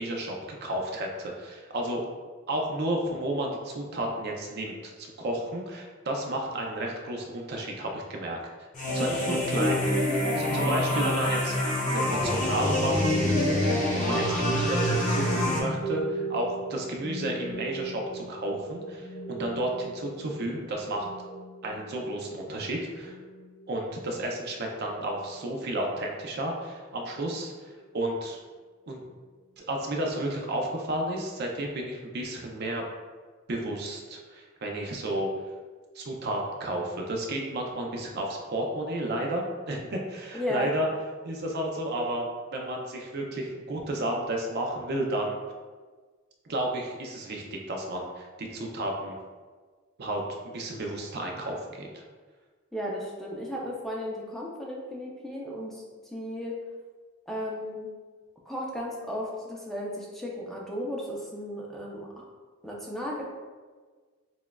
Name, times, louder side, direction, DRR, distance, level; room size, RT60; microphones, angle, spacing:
voice 1, 0.0-2.0 2.5-8.4 8.9-11.6 11.8-21.1 21.6-23.1 23.7-27.5 27.9-28.4 28.9-29.0 29.6-32.8 33.5-35.3 36.0-40.9 41.2-42.3 42.5-45.4 46.5-49.2 50.0-52.0, right 1 dB, 50° right, 1 dB, 0.5 m, -32 dB
sound 1, 8.7-15.6, left 1 dB, 40° left, 0.8 m, -26 dB
voice 2, 9.0-9.4 40.3-40.7 52.7-55.8 56.1-56.6 57.3-57.9 58.5-62.2 62.6-63.2, equal, ahead, -3 dB, 0.5 m, -35 dB
sound 2, 12.1-25.5, equal, 30° right, 1.1 m, -36 dB
6.0 x 2.3 x 2.2 m, 1.4 s
head